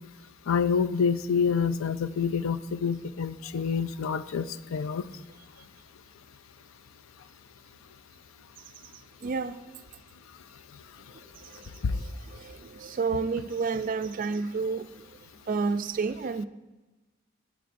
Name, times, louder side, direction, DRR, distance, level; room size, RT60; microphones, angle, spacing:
voice 1, 0.5-5.1 11.8-11.9, left 6 dB, 75° left, 0.4 m, -27 dB
voice 2, 9.2-9.5 12.4-14.9 15.5-16.5, right 4 dB, 40° right, 0.4 m, -29 dB
18.5 x 8.6 x 2.6 m
head